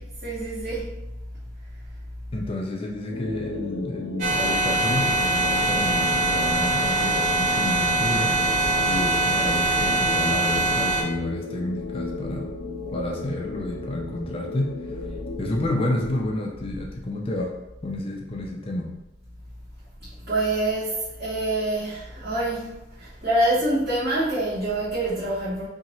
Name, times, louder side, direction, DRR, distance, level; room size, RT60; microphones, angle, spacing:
voice 1, 0.2-0.9 20.2-25.7, right 1 dB, 60° right, -12 dB, 1.2 m, -26 dB
voice 2, 2.3-8.3 8.9-12.5 12.9-14.7 15.4-17.5 17.8-18.9, left 1 dB, 30° left, -1 dB, 0.4 m, -30 dB
sound 1, 3.1-16.2, left 3 dB, 85° left, 0.6 m, -35 dB
sound 2, 4.2-11.0, right 2 dB, 40° right, 0.7 m, -23 dB
2.8 x 2.8 x 4.2 m, 0.96 s
head